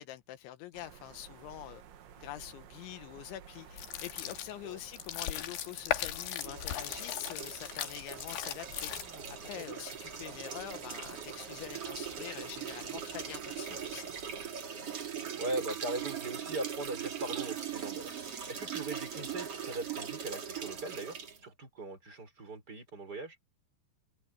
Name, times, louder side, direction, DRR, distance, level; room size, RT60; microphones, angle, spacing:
voice 1, 0.0-1.8 2.2-14.1, left 13 dB, 85° left, 3.6 m, -45 dB
sound 1, 0.7-14.5, right 9 dB, 85° right, 4.5 m, -54 dB
sound 2, 3.7-9.4, left 11 dB, 70° left, 3.6 m, -38 dB
sound 3, 6.3-21.4, right 8 dB, 40° right, 3.1 m, -41 dB
voice 2, 8.9-9.7 15.0-18.1 18.5-21.1 21.4-23.4, right 2 dB, 20° right, 4.9 m, -40 dB
omnidirectional pair, 5.2 m